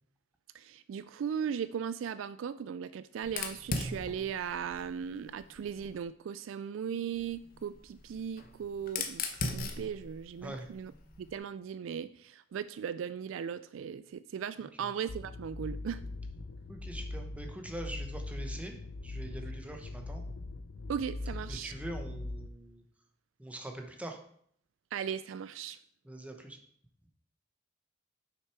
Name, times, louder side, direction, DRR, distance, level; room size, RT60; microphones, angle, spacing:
voice 1, 0.5-10.9 11.2-16.0 20.9-21.7 24.9-25.8, right 7 dB, 80° right, 14 dB, 0.3 m, -37 dB
Fire, 3.2-6.0 7.1-11.4, left 3 dB, 45° left, 0.9 m, -40 dB
sound 1, 15.1-22.5, left 2 dB, 90° left, 0.6 m, -41 dB
voice 2, 16.7-18.8 19.0-20.2 21.5-22.8 23.4-24.2 26.0-26.6, right 1 dB, 5° right, 3 dB, 0.9 m, -43 dB
6.6 x 6.0 x 4.6 m, 0.64 s
head